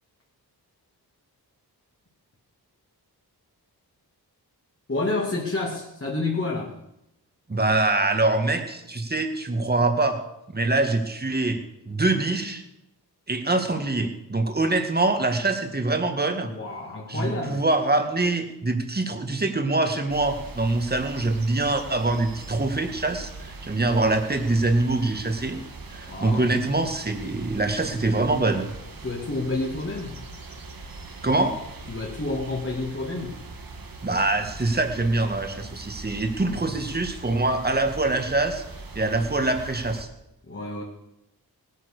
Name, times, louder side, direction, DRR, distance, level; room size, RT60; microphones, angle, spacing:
voice 1, 4.9-6.8 16.4-17.6 26.0-26.6 29.0-30.2 31.9-33.4 40.5-40.8, left 2 dB, 35° left, -2 dB, 2.4 m, -29 dB
voice 2, 7.5-10.2 10.5-11.6 11.9-12.6 13.3-16.5 17.1-25.6 25.9-28.7 31.2-31.6 34.0-38.6 38.9-40.1, right 2 dB, 25° right, 6 dB, 1.9 m, -24 dB
sound 1, 20.1-40.0, right 3 dB, 60° right, 2.0 m, -41 dB
19.0 x 9.6 x 6.7 m, 0.86 s
wide cardioid pair, 120°, 39 cm